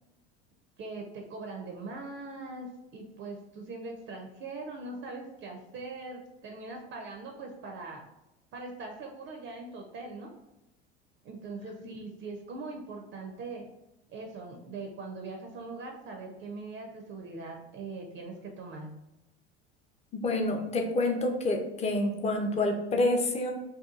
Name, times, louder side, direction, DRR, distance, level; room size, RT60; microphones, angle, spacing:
voice 1, 0.8-8.0 8.5-10.3 11.2-13.7 14.1-18.9, right 3 dB, 35° right, 1 dB, 0.5 m, -41 dB
voice 2, 20.1-23.5, left 2 dB, 20° left, 3 dB, 0.5 m, -28 dB
2.7 x 2.3 x 2.4 m, 0.95 s
hypercardioid pair, 80°, 33 cm